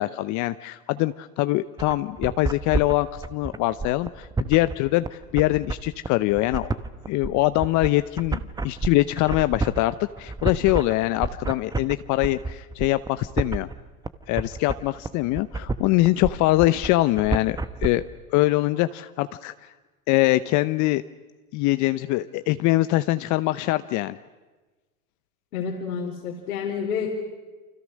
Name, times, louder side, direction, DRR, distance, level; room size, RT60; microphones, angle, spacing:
voice 1, 0.0-6.7 7.1-13.7 14.3-18.0 18.3-19.5 20.1-21.0 21.5-24.2, left 18 dB, 40° left, 13 dB, 0.8 m, -23 dB
sound 1, 1.8-17.9, right 3 dB, 10° right, 0.9 m, -30 dB
voice 2, 25.5-27.1, left 7 dB, 75° left, -2 dB, 4.5 m, -29 dB
29.5 x 25.0 x 6.4 m, 1.2 s
hypercardioid pair, 105°, 43 cm